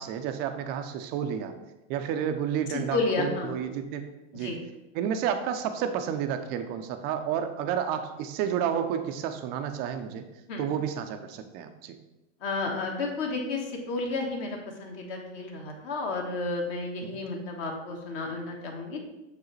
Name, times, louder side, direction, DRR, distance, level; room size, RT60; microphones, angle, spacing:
voice 1, 0.0-1.5 1.9-4.5 4.9-10.2 10.6-12.0 17.1-17.2, right 8 dB, 30° right, 7 dB, 0.3 m, -31 dB
voice 2, 2.9-3.5 4.4-4.6 10.5-10.6 12.4-19.0, left 3 dB, 50° left, 1 dB, 1.3 m, -31 dB
6.7 x 4.7 x 3.1 m, 0.97 s
supercardioid pair, 135°, 38 cm